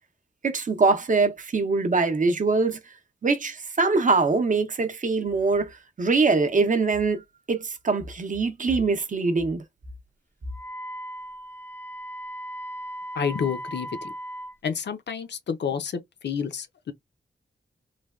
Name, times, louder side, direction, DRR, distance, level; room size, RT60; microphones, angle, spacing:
voice 1, 0.4-2.8 3.2-9.6, right 4 dB, 45° right, 0.6 m, -23 dB
Wind instrument woodwind instrument, 10.5-14.6, equal, 10° left, 0.4 m, -37 dB
voice 2, 13.1-14.1 14.6-16.9, left 7 dB, 65° left, 0.5 m, -29 dB
3.2 x 2.2 x 2.3 m
wide cardioid pair, 125°, 19 cm